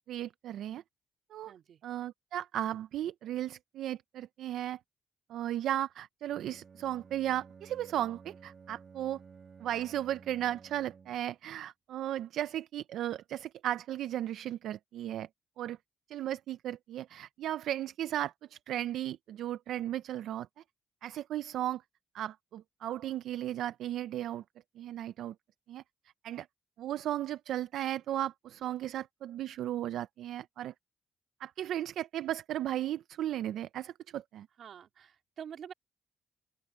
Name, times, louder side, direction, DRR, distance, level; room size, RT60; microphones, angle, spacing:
voice 1, 0.1-0.8 1.3-1.5 1.8-4.8 5.3-9.2 9.6-15.3 15.6-15.8 16.1-20.5 21.0-21.8 22.1-24.4 24.8-25.3 25.7-25.8 26.2-26.5 26.8-30.7 31.4-34.5, right 12 dB, 80° right, 0.5 m, -35 dB
voice 2, 1.5-1.8 34.6-35.7, right 8 dB, 60° right, 3.3 m, -47 dB
Bowed string instrument, 6.2-11.3, right 5 dB, 45° right, 1.8 m, -54 dB
open air
cardioid pair, 90°, 0 cm